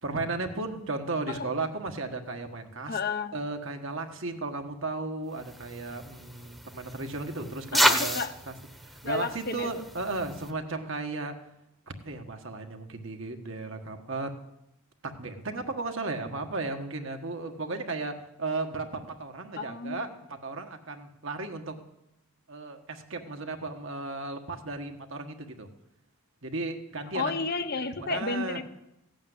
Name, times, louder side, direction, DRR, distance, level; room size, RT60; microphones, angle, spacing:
voice 1, 0.0-3.0 3.3-8.2 8.5-11.3 11.9-14.3 15.0-21.8 22.5-25.7 26.4-27.3 28.0-28.6, right 3 dB, 60° right, 4 dB, 1.5 m, -35 dB
voice 2, 2.9-3.3 7.7-8.3 9.0-9.7 19.6-20.0 27.1-28.6, left 4 dB, 45° left, 9 dB, 0.8 m, -32 dB
sound 1, 5.4-10.5, equal, ahead, 1.1 m, -31 dB
16.5 x 8.7 x 9.7 m, 0.87 s
head